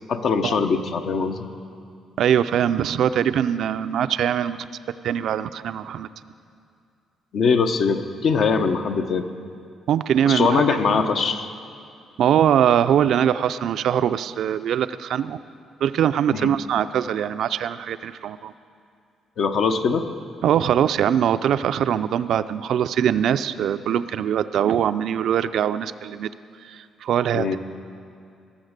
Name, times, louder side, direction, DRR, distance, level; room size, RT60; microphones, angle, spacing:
voice 1, 0.1-1.4 7.3-9.3 10.2-11.5 16.3-16.5 19.4-20.0 27.3-27.6, left 5 dB, 65° left, 7 dB, 0.8 m, -22 dB
voice 2, 2.2-4.6 5.0-6.1 9.9-11.0 12.2-15.4 15.8-18.5 20.4-26.3 26.6-27.6, right 9 dB, 70° right, 12 dB, 0.4 m, -22 dB
19.0 x 7.2 x 6.6 m, 2.4 s
cardioid pair, 90°, 0 cm